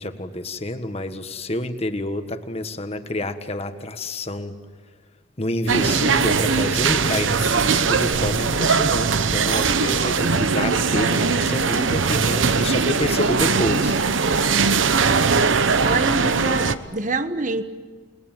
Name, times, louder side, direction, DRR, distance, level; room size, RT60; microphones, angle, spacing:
voice 1, 0.0-4.6 5.4-14.0, left 1 dB, 30° left, 8 dB, 1.5 m, -28 dB
sound 1, 5.7-16.7, right 5 dB, 80° right, 1.0 m, -20 dB
voice 2, 15.8-17.6, right 2 dB, 40° right, 9 dB, 1.4 m, -25 dB
29.5 x 20.5 x 9.0 m, 1.5 s
head